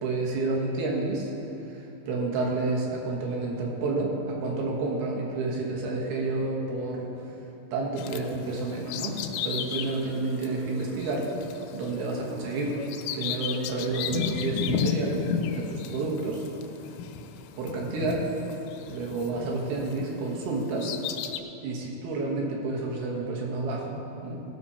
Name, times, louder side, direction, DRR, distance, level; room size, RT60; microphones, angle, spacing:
voice 1, 0.0-1.3 1.7-7.1 7.7-9.2 9.4-11.3 11.7-12.8 13.1-15.2 15.5-16.5 17.6-18.3 18.9-20.9 21.6-24.4, right 3 dB, 80° right, -2 dB, 3.2 m, -30 dB
Bird vocalization bird call bird song, 8.0-20.1 20.5-21.4, left 7 dB, 80° left, 2.2 m, -34 dB
17.0 x 6.1 x 4.2 m, 3.0 s
omnidirectional pair, 4.5 m